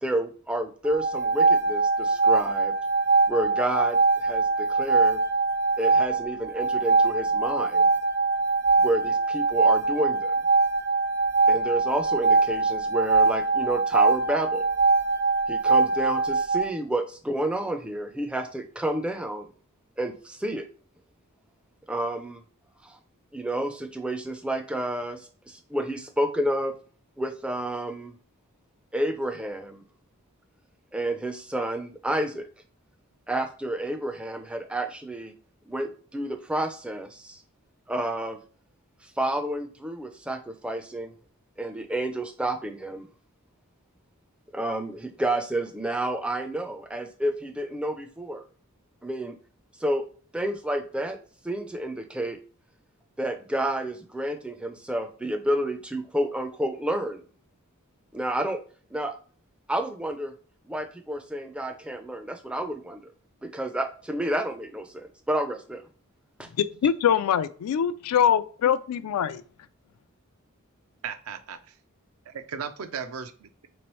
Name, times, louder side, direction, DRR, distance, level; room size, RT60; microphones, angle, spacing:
voice 1, 0.0-2.7 3.3-5.2 5.8-7.9 8.8-10.3 11.5-14.6 15.5-19.5 20.0-20.6 21.9-22.4 22.8-23.0 23.3-26.7 27.2-28.1 28.9-29.8 30.9-32.5 33.3-35.3 35.7-37.4 37.9-38.4 39.0-41.1 41.6-43.1 44.5-48.4 49.0-49.4 49.8-50.0 50.3-51.2 51.4-52.4 53.2-57.2 58.1-58.6 58.9-59.1 59.7-60.3 60.7-63.1 63.4-65.8, right 1 dB, 5° right, 0.3 m, -30 dB
sound 1, 0.8-16.7, right 3 dB, 55° right, 0.8 m, -23 dB
voice 2, 66.8-69.4, left 8 dB, 85° left, 0.3 m, -23 dB
voice 3, 71.0-71.6 72.3-73.7, right 6 dB, 70° right, 0.5 m, -36 dB
3.4 x 3.0 x 3.0 m
head